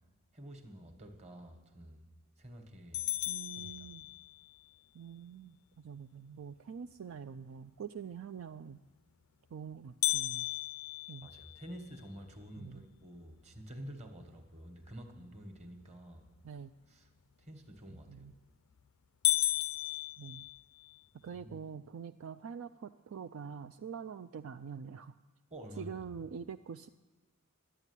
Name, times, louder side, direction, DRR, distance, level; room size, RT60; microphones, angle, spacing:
voice 1, 0.3-2.0 2.4-3.1 3.6-3.9 11.2-16.3 16.9-17.1 17.4-18.3 21.3-21.6 25.5-25.9, equal, 30° right, 5 dB, 1.4 m, -49 dB
sound 1, 2.9-4.5 10.0-12.2 12.7-12.8 13.3-13.4 14.0-14.4 18.0-18.4 18.8-18.9 19.2-21.0, left 15 dB, 70° left, 0.5 m, -34 dB
voice 2, 3.3-4.1 4.9-8.8 9.5-10.5 11.1-11.3 12.6-12.8 16.4-16.7 17.9-18.3 20.2-20.5 21.2-25.1 25.8-26.9, right 6 dB, 65° right, 10 dB, 0.4 m, -45 dB
12.5 x 9.1 x 9.7 m, 1.2 s
head